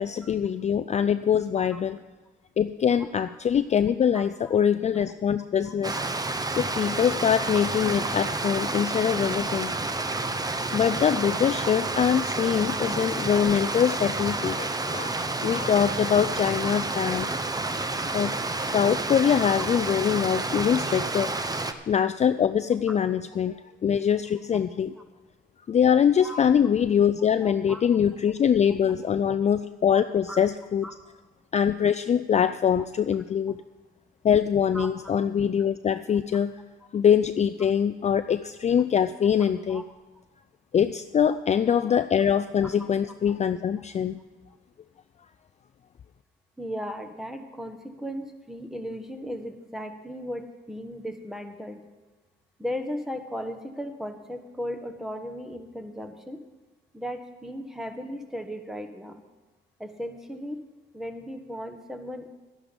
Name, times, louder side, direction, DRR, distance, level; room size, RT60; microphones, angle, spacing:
voice 1, 0.0-2.0 2.6-6.0 6.6-9.7 10.7-15.1 15.4-17.3 18.1-18.3 18.7-21.3 21.9-23.5 23.8-24.9 25.7-30.9 31.5-33.6 34.2-36.5 36.9-39.8 40.7-44.2, left 8 dB, 35° left, 11 dB, 0.4 m, -23 dB
voice 2, 4.1-4.6 5.6-5.7 7.9-8.0 9.5-9.6 12.1-12.2 13.8-13.9 26.2-26.4 27.4-27.8 29.3-29.4 30.3-30.4 30.8-30.9 34.7-34.9 38.1-38.2 39.7-39.8 42.8-42.9 46.6-51.8 52.6-56.4 56.9-59.2 59.8-60.6 60.9-62.3, equal, ahead, 5 dB, 1.4 m, -36 dB
Stream, 5.8-21.7, right 2 dB, 20° right, 0.9 m, -29 dB
12.0 x 11.0 x 5.3 m, 1.2 s
cardioid pair, 90°, 20 cm